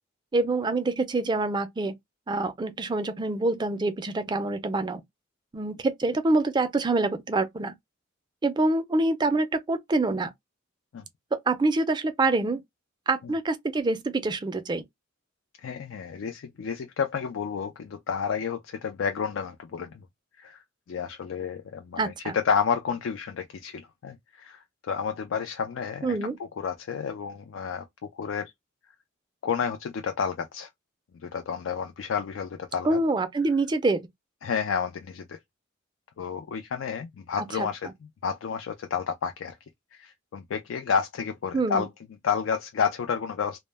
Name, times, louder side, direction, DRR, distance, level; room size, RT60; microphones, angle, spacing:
voice 1, 0.3-1.9 2.3-5.0 5.5-7.7 8.4-10.3 11.5-12.6 13.1-14.8 22.0-22.4 26.0-26.4 32.8-34.0 37.4-37.7 41.5-41.9, right 2 dB, 20° right, 0.4 m, -26 dB
voice 2, 15.6-20.0 20.4-20.6 20.9-26.2 26.6-27.8 28.1-28.5 29.4-30.7 31.2-33.0 34.4-35.4 36.2-37.9 38.2-39.6 39.9-41.9 42.2-43.6, left 6 dB, 70° left, 0.4 m, -30 dB
2.0 x 2.0 x 3.2 m
head